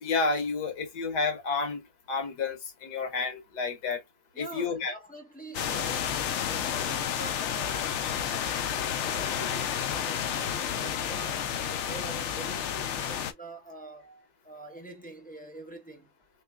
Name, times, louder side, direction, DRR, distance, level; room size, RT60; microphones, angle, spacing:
voice 1, 0.0-1.8 2.1-4.0 4.4-4.9, left 4 dB, 90° left, 1.7 m, -30 dB
voice 2, 4.3-8.6 9.1-16.1, right 2 dB, 10° left, 0.6 m, -45 dB
sound 1, 5.5-13.3, left 9 dB, 65° left, 0.7 m, -31 dB
3.6 x 3.3 x 2.3 m
omnidirectional pair, 1.7 m